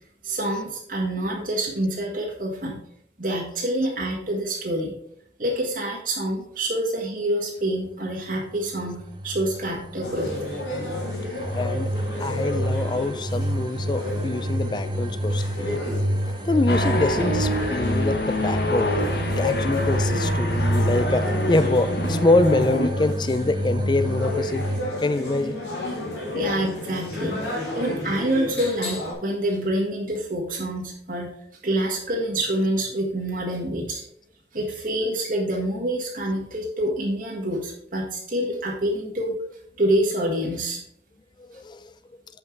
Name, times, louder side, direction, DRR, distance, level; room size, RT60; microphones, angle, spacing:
voice 1, 0.2-2.8 3.2-4.9 5.4-9.0 9.2-10.3 26.3-31.3 31.6-34.0 34.5-39.3 39.8-40.8, right 1 dB, 50° right, -2 dB, 1.6 m, -26 dB
sound 1, 8.5-24.8, equal, 25° right, 0.5 m, -28 dB
sound 2, 10.0-29.1, left 2 dB, 85° left, 2.5 m, -32 dB
voice 2, 11.5-11.9 12.2-16.0 16.4-18.9 19.4-24.6 25.0-25.6 41.4-41.9, left 2 dB, 25° left, 13 dB, 0.4 m, -25 dB
sound 3, 16.7-22.9, left 1 dB, 60° left, 1.2 m, -27 dB
7.8 x 5.8 x 4.6 m, 0.72 s
head